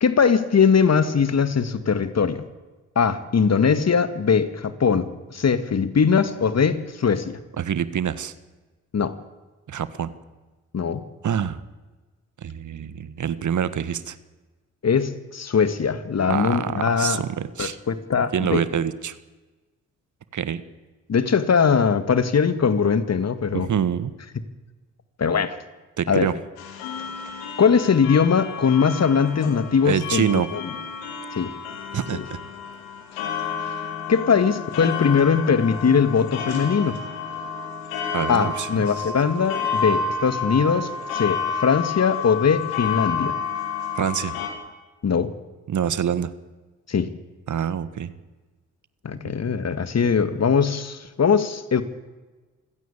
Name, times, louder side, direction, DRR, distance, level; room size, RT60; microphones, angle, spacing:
voice 1, 0.0-2.4 3.0-7.4 8.9-9.2 10.7-11.0 14.8-17.2 17.6-18.6 21.1-23.7 25.2-25.6 26.1-26.3 27.6-30.7 31.3-31.6 32.1-32.2 34.1-37.0 38.3-43.4 45.0-45.3 46.9-47.1 49.0-51.8, left 6 dB, 45° left, 12 dB, 2.0 m, -21 dB
voice 2, 7.6-8.3 9.7-10.1 11.2-11.6 12.4-14.2 16.3-17.8 18.3-19.1 20.3-20.6 23.5-24.1 26.0-26.4 29.8-30.5 31.9-32.4 38.1-38.8 43.9-44.4 45.7-46.3 47.5-48.1 49.2-49.3, right 8 dB, 55° right, 15 dB, 1.6 m, -26 dB
sound 1, 26.6-44.5, left 5 dB, 80° left, 3.2 m, -30 dB
25.5 x 16.5 x 8.6 m, 1.2 s
hypercardioid pair, 40°, 36 cm